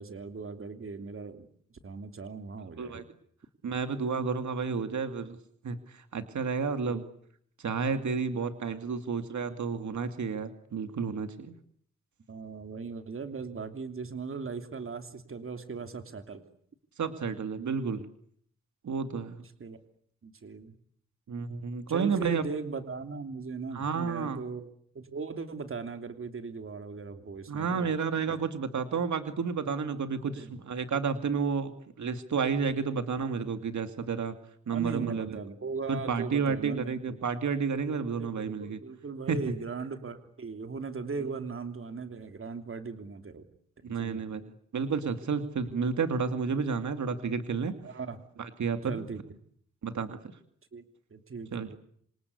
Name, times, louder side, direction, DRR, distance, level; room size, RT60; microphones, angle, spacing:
voice 1, 0.0-3.0 6.8-7.0 12.3-16.4 19.4-19.8 20.2-20.8 21.9-24.7 24.9-27.9 28.3-28.4 30.3-30.6 34.7-37.2 38.2-43.5 43.9-44.2 47.8-48.2 48.9-49.2 50.7-50.8 51.1-51.8, right 4 dB, 45° right, 8 dB, 3.0 m, -38 dB
voice 2, 3.6-5.4 5.6-7.0 7.6-11.5 17.0-18.1 18.8-19.4 21.3-22.4 23.7-24.4 27.5-31.7 32.0-34.3 34.7-35.4 35.9-38.8 39.3-39.4 43.8-44.4 44.7-47.7 48.4-49.0 49.8-50.2 51.5-51.8, right 5 dB, 75° right, 8 dB, 2.5 m, -31 dB
27.0 x 26.5 x 8.4 m, 0.65 s
wide cardioid pair, 145°, 29 cm